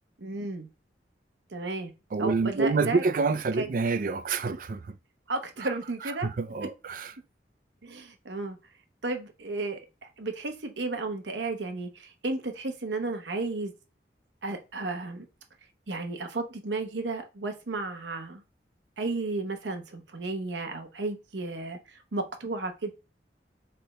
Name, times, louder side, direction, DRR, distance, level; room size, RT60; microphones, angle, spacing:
voice 1, 0.2-0.7 1.5-1.9 2.2-3.0 3.6-3.7 5.3-6.3 7.8-8.6 9.0-13.7 14.4-15.3 15.9-18.4 19.0-22.9, right 3 dB, 90° right, 0.8 m, -33 dB
voice 2, 2.1-5.0 5.6-5.7 6.0-7.1, right 4 dB, 50° right, 0.4 m, -27 dB
3.4 x 3.3 x 4.0 m
head